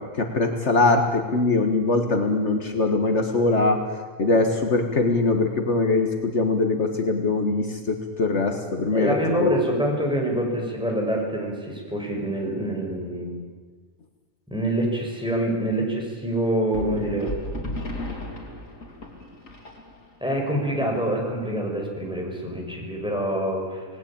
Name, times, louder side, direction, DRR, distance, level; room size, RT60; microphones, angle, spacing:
voice 1, 0.0-3.9 4.2-9.8, left 3 dB, 60° left, 5 dB, 2.0 m, -22 dB
voice 2, 8.9-13.4 14.5-17.9 20.2-23.9, right 1 dB, 5° right, -1 dB, 6.0 m, -26 dB
sound 1, 16.7-20.3, left 1 dB, 90° left, 3.9 m, -34 dB
27.5 x 19.0 x 8.8 m, 1.4 s
omnidirectional pair, 1.4 m